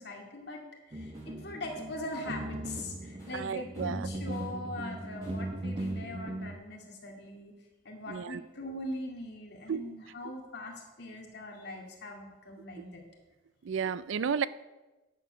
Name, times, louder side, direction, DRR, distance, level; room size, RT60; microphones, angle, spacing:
voice 1, 0.0-7.5 7.8-13.0, left 1 dB, 60° left, 0 dB, 2.2 m, -41 dB
sound 1, 0.9-6.5, right 1 dB, 30° right, 0.6 m, -38 dB
Tools, 1.1-1.4 1.6-3.5 3.7-4.7 5.2-6.1, left 1 dB, 20° left, 3.3 m, -60 dB
voice 2, 3.3-4.1 8.1-8.4 9.7-9.8 12.8-12.9 13.6-14.5, right 7 dB, 90° right, 17 dB, 0.4 m, -32 dB
10.0 x 6.9 x 6.4 m, 1.1 s
head